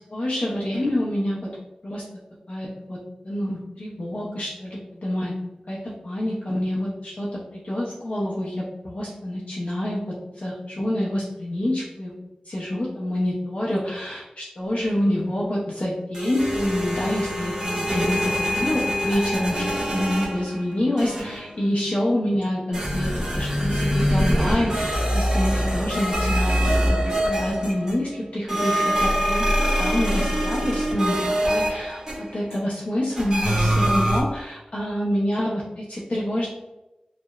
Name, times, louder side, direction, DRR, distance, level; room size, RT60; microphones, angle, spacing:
voice 1, 0.1-1.5 1.8-2.0 2.5-3.0 3.2-5.3 5.7-12.1 12.5-27.0 27.3-31.2 31.5-36.5, left 1 dB, 60° left, -6 dB, 0.5 m, -27 dB
sound 1, 16.1-20.6 21.0-21.5 22.7-28.1 28.5-32.5 33.2-34.2, equal, 25° right, 0.8 m, -24 dB
2.8 x 2.0 x 2.3 m, 0.98 s
wide cardioid pair, 60°, 2 cm